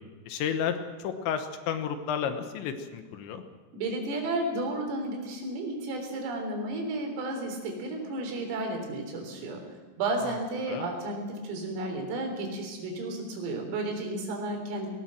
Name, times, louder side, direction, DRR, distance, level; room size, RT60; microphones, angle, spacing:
voice 1, 0.3-3.4 10.2-10.3 10.7-10.9, left 8 dB, 70° left, 8 dB, 3.2 m, -32 dB
voice 2, 3.7-9.6 10.0-14.9, right 2 dB, 90° right, 3 dB, 6.4 m, -32 dB
19.0 x 19.0 x 7.6 m, 1.4 s
omnidirectional pair, 5.8 m